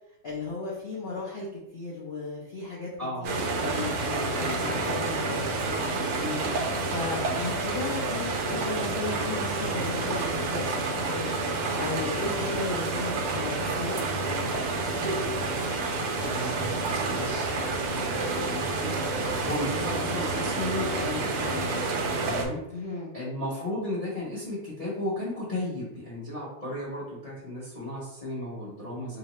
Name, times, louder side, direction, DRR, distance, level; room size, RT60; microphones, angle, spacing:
voice 1, 0.2-1.5 1.7-2.9 3.2-6.3 6.9-11.3 11.8-14.5 22.7-23.1, left 3 dB, 65° left, -5 dB, 0.6 m, -35 dB
sound 1, 3.2-22.5, right 3 dB, 75° right, 0.7 m, -29 dB
voice 2, 4.2-4.6 6.1-6.6 16.2-17.8 18.0-18.9 19.2-22.8 23.1-29.2, left 1 dB, 25° left, -7 dB, 0.9 m, -35 dB
2.9 x 2.7 x 4.1 m, 0.89 s
omnidirectional pair, 2.0 m